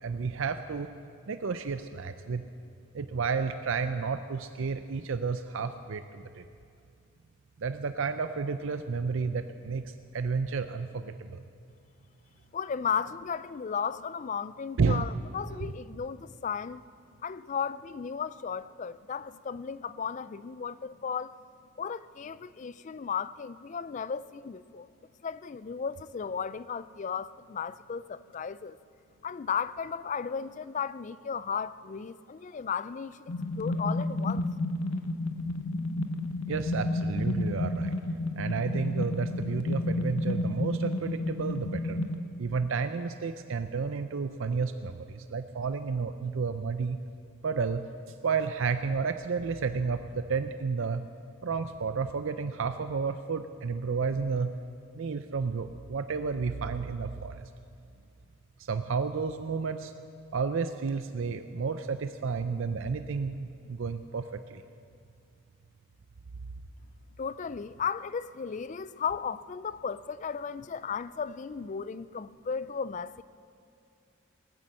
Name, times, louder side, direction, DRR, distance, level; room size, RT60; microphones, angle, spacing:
voice 1, 0.0-0.9 1.3-2.4 2.9-6.4 7.6-11.4 14.8-15.1 36.5-38.0 38.4-42.0 42.4-47.0 47.4-47.9 48.2-51.1 51.4-54.5 54.9-57.4 58.6-59.9 60.3-64.6, right 5 dB, 60° right, 0.5 m, -31 dB
voice 2, 12.5-16.8 17.2-21.3 21.8-24.9 25.2-28.8 29.2-34.5 67.2-73.2, left 6 dB, 35° left, 0.3 m, -35 dB
sound 1, 33.3-42.2, left 2 dB, 90° left, 1.0 m, -31 dB
18.5 x 9.5 x 7.6 m
head